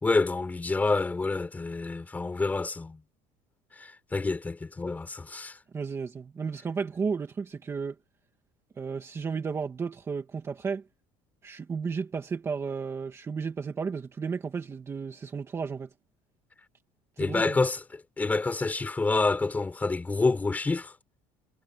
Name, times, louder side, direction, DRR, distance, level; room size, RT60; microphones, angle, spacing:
voice 1, 0.0-3.0 3.8-5.6 17.2-20.9, left 3 dB, 10° left, 3.9 m, -28 dB
voice 2, 5.7-7.9 8.8-10.8 11.4-15.9 17.2-17.6, right 5 dB, 20° right, 1.8 m, -33 dB
cardioid pair, 175°, 14 cm